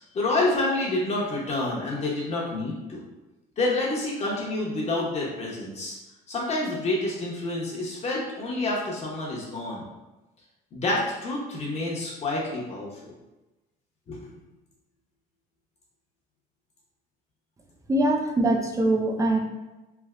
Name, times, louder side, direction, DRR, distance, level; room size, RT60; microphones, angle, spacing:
voice 1, 0.1-3.0 3.6-6.0 6.3-9.8 10.7-12.9 14.1-14.3, left 2 dB, 40° left, -4 dB, 0.9 m, -28 dB
voice 2, 17.9-19.4, right 1 dB, 20° right, 3 dB, 0.4 m, -23 dB
3.3 x 2.6 x 2.4 m, 1.1 s
cardioid pair, 110°, 17 cm